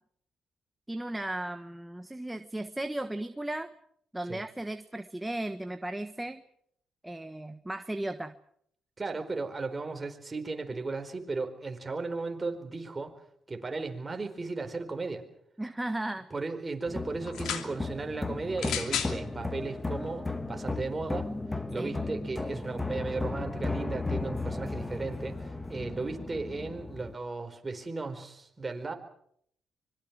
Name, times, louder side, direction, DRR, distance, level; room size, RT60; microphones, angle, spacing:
voice 1, 0.9-3.7 4.1-6.4 7.0-8.3 15.6-16.3 21.7-22.0, right 1 dB, 10° right, 8 dB, 1.3 m, -35 dB
voice 2, 9.0-13.2 13.5-15.2 16.3-21.3 21.7-28.9, right 3 dB, 25° right, 5 dB, 4.5 m, -35 dB
sound 1, 16.9-27.1, left 3 dB, 15° left, 1.6 m, -35 dB
sound 2, 17.3-17.7 18.6-19.2 20.1-20.2, left 9 dB, 80° left, 2.7 m, -33 dB
25.0 x 22.5 x 6.2 m, 0.68 s
cardioid pair, 90°, 0 cm